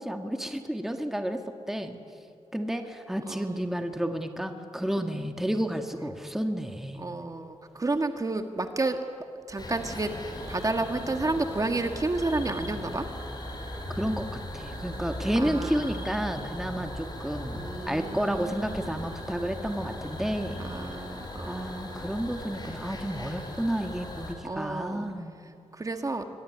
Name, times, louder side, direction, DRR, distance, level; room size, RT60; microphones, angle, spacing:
voice 1, 0.0-1.4 1.7-2.0 2.5-7.1 13.9-17.6 17.9-20.7 21.4-25.4, equal, 5° right, 5 dB, 1.7 m, -31 dB
voice 2, 3.3-3.6 7.0-9.0 9.5-10.1 10.5-13.1 15.3-16.1 17.5-19.1 20.6-22.1 24.4-25.1 25.7-26.2, right 2 dB, 30° right, 6 dB, 1.7 m, -31 dB
sound 1, 9.6-24.3, left 1 dB, 35° left, 4.9 m, -38 dB
24.0 x 22.0 x 9.9 m, 2.6 s
wide cardioid pair, 105°, 12 cm